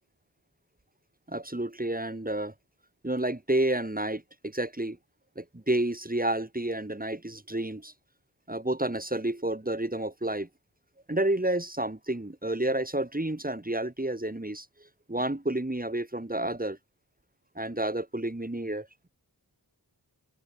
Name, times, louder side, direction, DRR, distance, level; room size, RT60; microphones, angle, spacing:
voice 1, 1.3-2.5 3.0-5.0 5.4-7.9 8.5-10.5 11.1-14.7 15.1-16.8 17.6-19.1, right 1 dB, 20° right, 5.2 m, -30 dB
wide cardioid pair, 75°, 41 cm